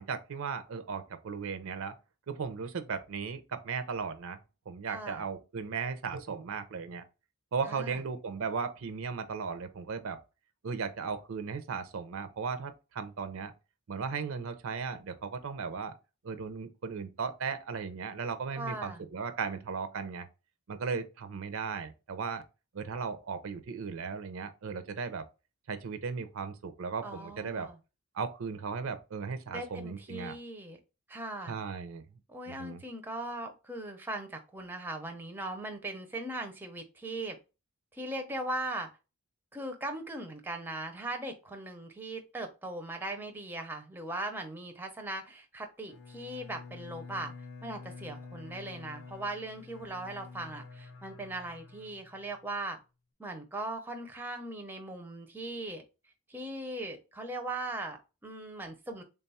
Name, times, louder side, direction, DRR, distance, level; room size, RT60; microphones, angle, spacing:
voice 1, 0.0-2.0 2.3-4.4 4.7-7.0 7.5-10.2 10.6-13.5 13.9-16.0 16.2-20.3 20.7-22.4 22.7-25.2 25.7-27.7 28.1-30.4 31.5-32.0 32.5-32.8, right 5 dB, 65° right, 0.5 m, -36 dB
voice 2, 4.9-5.2 7.7-8.0 18.5-19.0 27.0-27.8 29.5-30.8 31.1-31.6 32.3-37.4 37.9-38.9 39.5-47.3 47.6-52.8 53.2-55.8 56.3-59.0, right 2 dB, 10° right, 0.5 m, -39 dB
Bowed string instrument, 45.9-52.5, left 4 dB, 70° left, 0.7 m, -48 dB
3.5 x 2.3 x 4.0 m
head